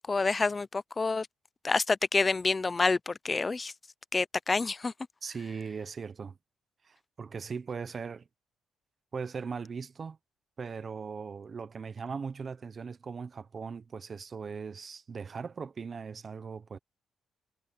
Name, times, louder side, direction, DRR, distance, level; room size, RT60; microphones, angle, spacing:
voice 1, 0.1-1.3 1.6-3.7 4.1-4.9, left 3 dB, 30° left, 0.6 m, -28 dB
voice 2, 5.2-6.4 6.8-8.2 9.1-10.2 10.6-16.8, right 5 dB, 45° right, 1.0 m, -39 dB
cardioid pair, 80°, 0 cm